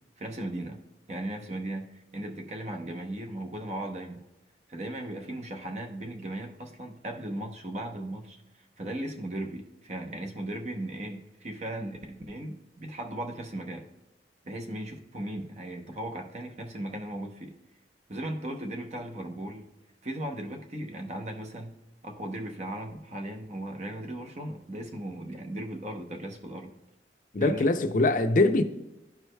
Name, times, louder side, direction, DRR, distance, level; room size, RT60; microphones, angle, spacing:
voice 1, 0.2-0.8 1.1-4.2 4.7-13.8 14.4-17.5 18.1-19.7 20.0-26.7 27.4-27.7, right 1 dB, 40° right, 0.8 m, -37 dB
voice 2, 27.3-28.6, left 2 dB, 50° left, 0.5 m, -23 dB
12.0 x 4.7 x 2.2 m
head